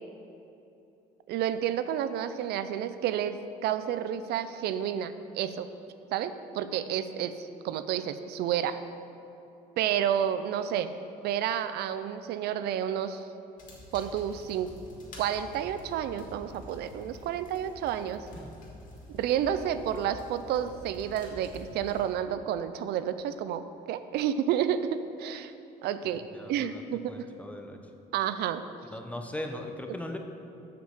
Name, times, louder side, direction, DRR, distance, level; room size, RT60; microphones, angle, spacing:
voice 1, 1.3-5.7 6.1-8.8 9.8-10.9 11.2-13.3 13.9-14.7 15.2-18.3 19.1-25.5 25.8-26.2 26.5-27.1 28.1-28.6, right 10 dB, 75° right, 11 dB, 0.4 m, -30 dB
sound 1, 13.6-22.0, left 1 dB, 50° left, 2.3 m, -48 dB
voice 2, 26.3-26.8 27.1-27.8 28.9-30.2, left 1 dB, 10° left, 4 dB, 0.8 m, -38 dB
7.3 x 6.0 x 7.2 m, 2.8 s
cardioid pair, 110°, 17 cm